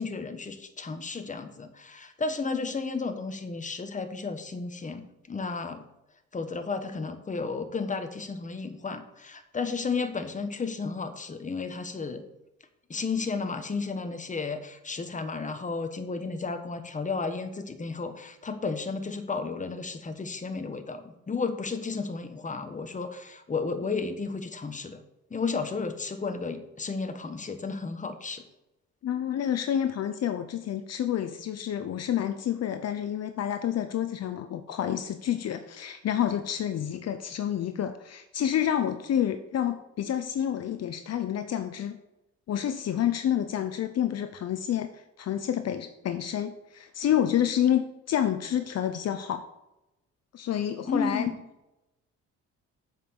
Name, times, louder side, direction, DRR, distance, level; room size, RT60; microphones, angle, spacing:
voice 1, 0.0-5.9 6.3-12.2 12.9-25.0 25.3-28.4 50.8-51.3, left 4 dB, 25° left, 8 dB, 1.2 m, -33 dB
voice 2, 29.0-42.0 42.5-44.9 45.2-49.4 50.3-51.3, left 10 dB, 55° left, 9 dB, 0.7 m, -28 dB
7.3 x 5.7 x 6.9 m, 0.93 s
cardioid pair, 90°, 30 cm